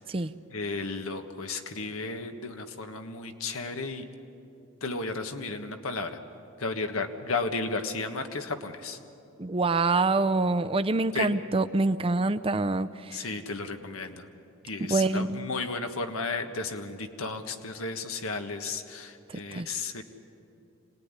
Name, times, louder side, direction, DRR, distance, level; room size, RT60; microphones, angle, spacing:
voice 1, 0.5-4.0 4.8-6.2 6.6-9.0 11.1-11.3 13.1-14.2 14.6-20.0, left 3 dB, 80° left, 6 dB, 1.6 m, -33 dB
voice 2, 9.4-13.3 14.8-15.4 19.5-19.7, right 3 dB, 25° right, 10 dB, 0.6 m, -26 dB
26.0 x 19.0 x 9.8 m, 2.8 s
head